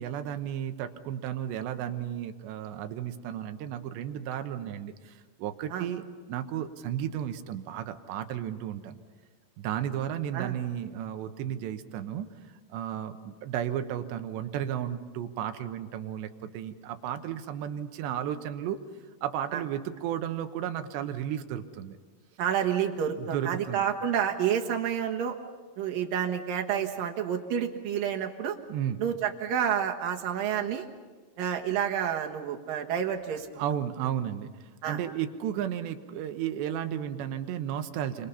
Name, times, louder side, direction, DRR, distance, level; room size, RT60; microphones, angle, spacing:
voice 1, 0.0-9.0 9.6-12.3 12.7-18.8 19.2-22.0 23.2-23.8 28.7-29.0 33.6-38.3, right 10 dB, 85° right, 8 dB, 3.3 m, -33 dB
voice 2, 22.4-25.4 25.8-28.6 29.0-30.8 31.4-33.5 34.8-35.0, right 9 dB, 60° right, 3 dB, 2.9 m, -29 dB
29.5 x 25.0 x 5.7 m, 1.4 s
omnidirectional pair, 5.0 m